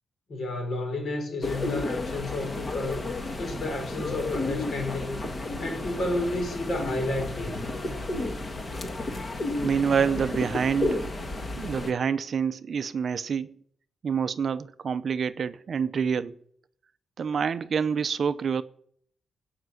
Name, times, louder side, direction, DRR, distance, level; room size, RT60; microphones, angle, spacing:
voice 1, 0.3-3.1 3.4-5.2 5.6-7.6, left 2 dB, 50° left, 5.0 m, -31 dB
sound 1, 1.4-11.9, left 2 dB, 25° left, 1.6 m, -32 dB
voice 2, 9.6-11.2 11.6-13.5 14.0-16.4 17.2-18.6, right 6 dB, 45° right, 0.6 m, -27 dB
17.0 x 5.9 x 8.0 m
wide cardioid pair, 140°, 0 cm